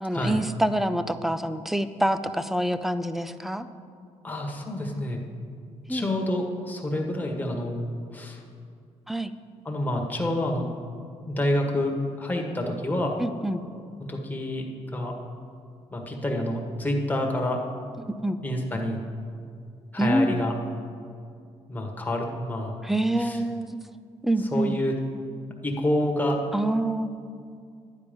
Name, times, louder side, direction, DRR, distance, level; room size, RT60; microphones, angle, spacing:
voice 1, 0.0-3.7 5.9-6.1 9.1-9.3 13.2-13.6 18.0-18.4 20.0-20.4 22.8-23.8 24.2-24.8 26.5-27.1, right 1 dB, ahead, 12 dB, 0.5 m, -26 dB
voice 2, 4.2-5.2 5.9-7.9 8.1-8.4 9.6-10.7 11.3-13.2 14.0-15.2 15.9-17.6 18.4-19.0 19.9-20.5 21.7-22.8 23.2-23.4 24.5-24.9 25.6-26.4, left 1 dB, 15° left, 0 dB, 1.6 m, -28 dB
11.5 x 9.0 x 5.2 m, 2.3 s
cardioid pair, 100°, 12 cm